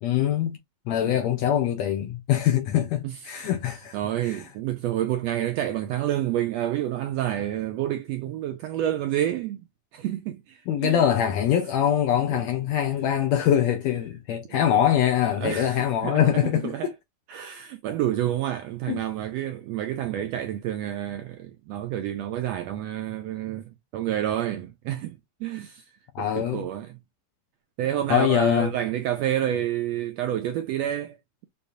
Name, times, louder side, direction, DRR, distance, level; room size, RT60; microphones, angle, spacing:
voice 1, 0.0-0.6 0.9-4.0 4.2-4.4 10.7-16.9 18.9-19.0 26.2-26.7 28.1-28.7, left 10 dB, 75° left, 1.7 m, -23 dB
voice 2, 3.9-9.7 9.9-11.0 12.3-12.5 14.5-14.6 15.4-16.9 17.3-25.9 26.2-27.0 27.8-31.2, right 12 dB, 80° right, 1.5 m, -29 dB
6.6 x 2.6 x 2.7 m
omnidirectional pair, 3.4 m